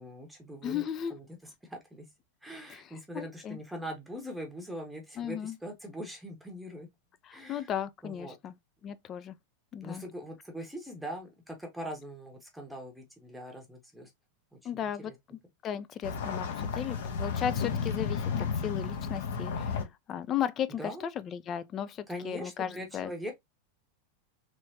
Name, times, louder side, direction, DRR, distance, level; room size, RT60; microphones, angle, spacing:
voice 1, 0.0-0.8 1.1-2.1 2.4-6.9 7.3-7.7 8.0-8.4 9.8-14.1 14.5-15.2 20.8-21.0 22.1-23.3, equal, 5° right, 0.8 m, -42 dB
voice 2, 0.6-1.1 2.7-2.9 3.1-3.6 5.2-5.6 7.2-8.5 8.8-9.3 9.7-10.0 14.6-15.1 15.6-23.1, left 9 dB, 30° left, 0.3 m, -35 dB
sound 1, 16.0-19.8, left 6 dB, 55° left, 0.7 m, -32 dB
3.1 x 3.1 x 2.6 m
figure-of-eight pair, 90°, 0 cm